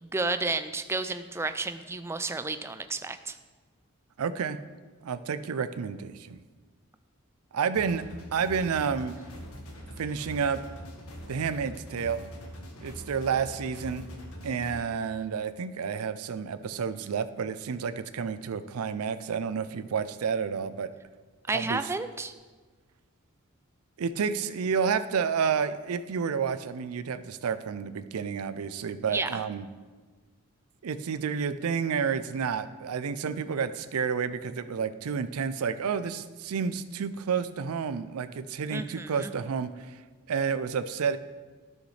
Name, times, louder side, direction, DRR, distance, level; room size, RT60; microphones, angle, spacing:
voice 1, 0.0-3.4 21.5-22.3 29.1-29.4 38.7-39.3, right 3 dB, 10° right, 10 dB, 0.3 m, -31 dB
voice 2, 4.2-4.6 5.0-6.4 7.5-8.0 8.3-9.2 10.0-10.6 11.3-12.2 12.8-14.0 14.4-20.9 21.5-21.8 24.0-29.7 30.8-40.0 40.3-41.2, right 6 dB, 85° right, 13 dB, 0.4 m, -30 dB
sound 1, 7.7-14.8, equal, 85° left, 1.5 m, -43 dB
12.5 x 6.4 x 3.2 m, 1.4 s
head